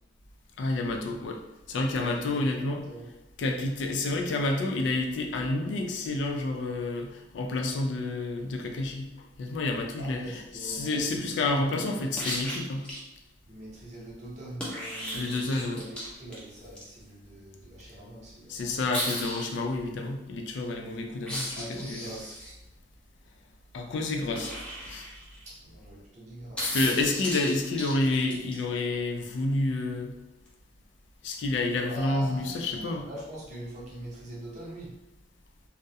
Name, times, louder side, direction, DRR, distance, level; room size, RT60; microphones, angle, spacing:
voice 1, 0.6-1.4 1.7-2.8 3.4-9.1 9.4-12.9 15.1-15.8 18.5-22.0 23.7-24.6 24.9-25.1 26.6-30.1 31.2-33.1, left 2 dB, 70° left, 2 dB, 0.3 m, -29 dB
voice 2, 2.0-3.1 10.0-12.2 13.5-18.7 21.6-22.4 25.4-26.8 31.7-35.0, right 1 dB, 40° right, -5 dB, 0.7 m, -43 dB
sound 1, 12.2-13.0 14.6-16.8 18.9-19.6 21.2-22.5 24.3-25.5 26.6-28.6 30.5-30.6, equal, 5° left, 0.5 m, -35 dB
2.3 x 2.0 x 2.7 m, 0.96 s
head